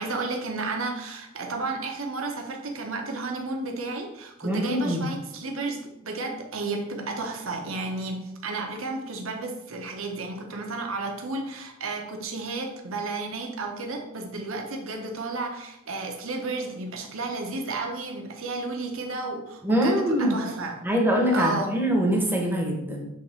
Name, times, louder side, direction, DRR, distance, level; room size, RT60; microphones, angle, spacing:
voice 1, 0.0-20.8 21.3-21.8, right 3 dB, 65° right, 2 dB, 1.1 m, -32 dB
voice 2, 4.4-5.1 19.6-20.4 20.8-23.0, equal, 10° right, 0 dB, 1.1 m, -23 dB
7.3 x 3.6 x 4.3 m, 0.87 s
head